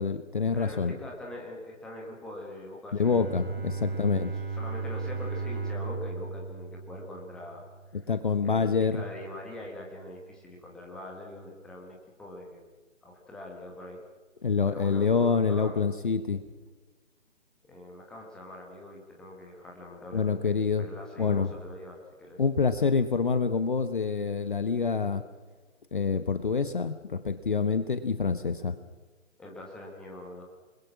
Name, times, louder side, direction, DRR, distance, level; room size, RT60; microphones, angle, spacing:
voice 1, 0.0-0.9 2.9-4.3 8.1-9.0 14.4-16.4 20.1-20.8 21.2-21.5 22.4-25.2 25.9-28.7, left 5 dB, 40° left, 11 dB, 1.0 m, -26 dB
voice 2, 0.5-3.3 3.7-4.0 4.3-7.6 7.9-8.1 8.4-12.7 13.0-14.0 14.6-15.8 17.7-22.4 29.4-30.4, left 1 dB, ahead, -1 dB, 1.6 m, -43 dB
Bowed string instrument, 3.0-8.7, right 4 dB, 50° right, 5.2 m, -36 dB
28.5 x 21.0 x 5.9 m, 1.3 s
figure-of-eight pair, 150°, 38 cm